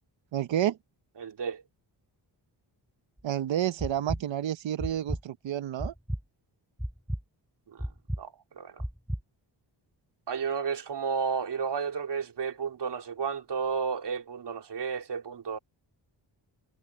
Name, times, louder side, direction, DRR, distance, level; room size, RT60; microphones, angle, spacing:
voice 1, 0.3-0.8 3.2-5.9, right 11 dB, 85° right, 0.9 m, -30 dB
voice 2, 1.2-1.6 7.7-7.9 8.2-8.8 10.3-15.6, right 6 dB, 65° right, 3.6 m, -32 dB
sound 1, 3.2-3.3 3.8-4.2 4.8-5.2 5.8-6.2 6.8-7.2 7.8-8.2 8.8-9.2, equal, ahead, 6.0 m, -32 dB
wide cardioid pair, 150°, 44 cm